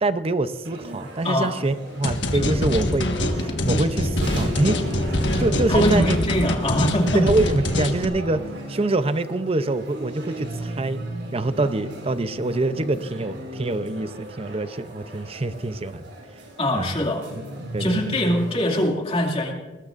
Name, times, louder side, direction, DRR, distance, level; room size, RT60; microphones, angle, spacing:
voice 1, 0.0-3.1 3.4-4.8 5.4-6.2 7.1-11.0 11.3-16.0 16.7-17.0 17.7-18.2, right 2 dB, 35° right, 12 dB, 0.7 m, -25 dB
sound 1, 0.6-18.9, right 1 dB, 90° right, 6.4 m, -37 dB
voice 2, 1.2-1.6 2.3-2.6 5.7-7.2 16.6-17.2 17.8-19.5, left 1 dB, 35° left, 1 dB, 2.4 m, -23 dB
sound 2, 2.0-8.0, left 1 dB, 70° left, 1.6 m, -24 dB
21.0 x 19.5 x 2.6 m, 1.3 s
head